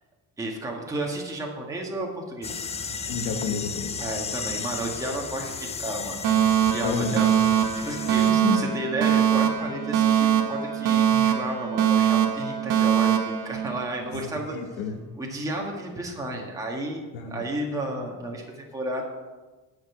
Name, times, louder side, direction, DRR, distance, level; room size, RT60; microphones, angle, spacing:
voice 1, 0.4-2.7 4.0-6.2 6.6-7.3 7.8-14.5 15.2-19.1, right 1 dB, 10° right, -1 dB, 1.5 m, -32 dB
sound 1, 2.4-8.3, left 5 dB, 20° left, 0.5 m, -34 dB
voice 2, 3.1-4.0 6.8-7.2 8.1-8.6 14.0-15.0 17.1-17.5, left 5 dB, 90° left, 3 dB, 1.3 m, -31 dB
Alarm, 6.2-14.3, right 9 dB, 65° right, 1.5 m, -22 dB
10.0 x 5.3 x 8.1 m, 1.2 s
cardioid pair, 140°, 34 cm